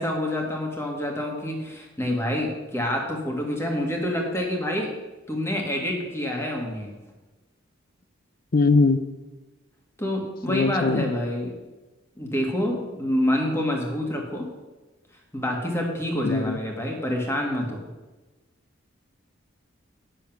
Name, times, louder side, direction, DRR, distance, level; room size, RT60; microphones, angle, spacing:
voice 1, 0.0-4.9 5.3-6.9 10.0-11.5 12.2-14.4 15.3-17.8, left 1 dB, 10° left, 0 dB, 1.6 m, -27 dB
voice 2, 8.5-9.0 10.5-11.0 16.2-16.6, left 3 dB, 45° left, 13 dB, 0.5 m, -20 dB
9.0 x 7.1 x 5.9 m, 1.2 s
head